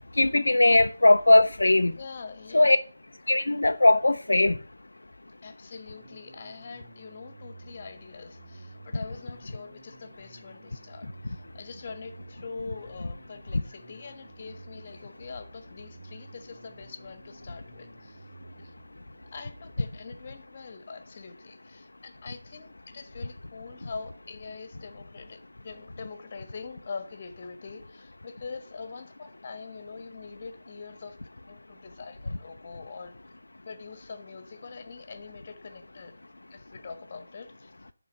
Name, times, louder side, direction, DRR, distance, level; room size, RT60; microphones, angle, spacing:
voice 1, 0.2-1.9 2.5-2.8 3.3-4.6, left 2 dB, 75° left, 0.4 m, -19 dB
voice 2, 2.0-2.8 5.4-18.2 18.6-18.7 19.2-31.2 31.5-33.1 33.6-36.1 36.5-37.7, left 4 dB, 40° left, 1.3 m, -43 dB
sound 1, 5.9-20.5, right 2 dB, 55° right, 2.5 m, -51 dB
10.5 x 3.9 x 6.6 m
figure-of-eight pair, 155°, 0 cm